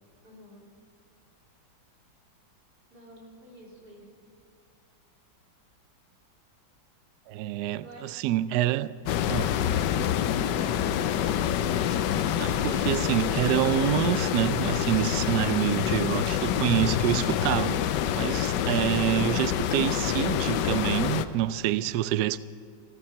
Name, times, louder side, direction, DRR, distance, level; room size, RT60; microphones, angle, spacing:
voice 1, 0.2-0.7 2.9-4.1 7.8-8.3 10.4-11.1, right 1 dB, 55° right, 4.1 m, -49 dB
voice 2, 7.3-8.9 9.3-9.6 12.4-17.8 18.2-22.4, right 13 dB, 75° right, 1.0 m, -27 dB
sound 1, 9.1-21.2, left 10 dB, 70° left, 1.2 m, -27 dB
15.5 x 13.5 x 6.0 m
omnidirectional pair, 2.1 m